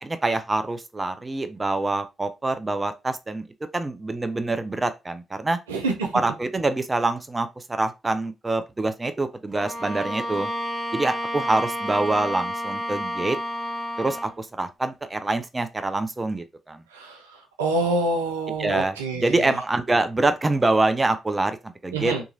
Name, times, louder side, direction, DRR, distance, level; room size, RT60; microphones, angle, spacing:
voice 1, 0.0-3.5 3.7-5.6 6.1-10.5 10.9-13.4 14.0-16.8 18.6-22.1, right 2 dB, 25° right, 0.4 m, -25 dB
voice 2, 5.7-6.1 16.9-17.2 17.6-19.3 21.9-22.2, right 2 dB, 90° right, 0.5 m, -26 dB
Bowed string instrument, 9.5-14.4, equal, 45° right, 1.0 m, -30 dB
2.9 x 2.4 x 2.6 m
hypercardioid pair, 45°, 0 cm